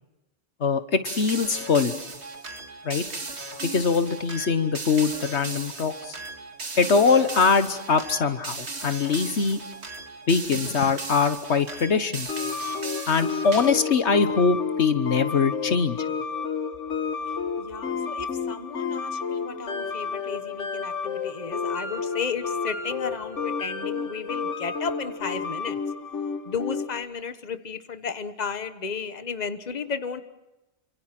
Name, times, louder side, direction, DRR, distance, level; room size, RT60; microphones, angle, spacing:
voice 1, 0.6-1.9 2.8-3.0 3.6-6.2 6.8-9.6 10.3-12.3 13.1-16.1, left 5 dB, 70° left, 10 dB, 1.5 m, -22 dB
sound 1, 1.0-14.0, right 3 dB, 65° right, 2.2 m, -36 dB
sound 2, 12.3-27.0, left 5 dB, 85° left, 1.7 m, -31 dB
voice 2, 17.3-25.8 26.4-30.2, left 6 dB, 35° left, 10 dB, 1.3 m, -34 dB
29.0 x 26.5 x 6.0 m, 0.97 s
omnidirectional pair, 1.2 m